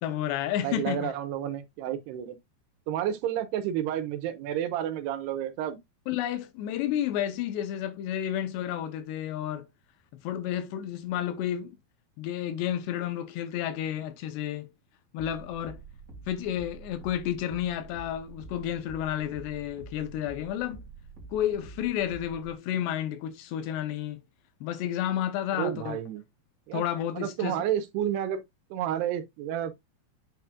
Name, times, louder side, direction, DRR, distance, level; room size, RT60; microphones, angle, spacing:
voice 1, 0.0-1.1 6.1-9.7 10.1-11.8 12.2-14.7 15.1-15.8 16.3-20.9 21.3-24.2 24.6-26.0 26.7-27.7, left 11 dB, 85° left, 3.0 m, -31 dB
voice 2, 0.6-2.4 2.9-5.8 25.6-26.2 26.7-26.8 27.2-28.4 28.7-29.8, right 10 dB, 80° right, 3.0 m, -30 dB
sound 1, 15.2-22.5, right 4 dB, 30° right, 1.7 m, -47 dB
8.6 x 5.9 x 2.4 m
omnidirectional pair, 4.8 m